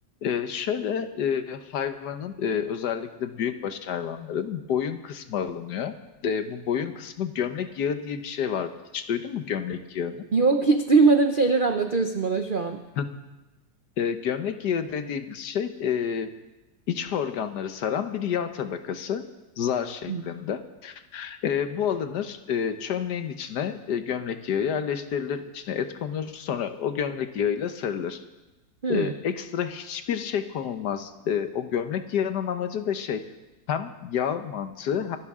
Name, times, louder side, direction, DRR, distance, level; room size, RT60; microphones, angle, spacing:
voice 1, 0.2-6.0 6.2-10.3 13.0-13.1 14.0-16.3 16.9-19.3 19.6-28.2 28.9-33.2 33.7-35.2, left 8 dB, 65° left, 9 dB, 1.4 m, -29 dB
voice 2, 10.3-12.8 20.1-20.2 28.8-29.1, right 4 dB, 65° right, 6 dB, 0.5 m, -21 dB
26.0 x 11.5 x 3.7 m, 1.1 s
omnidirectional pair, 2.0 m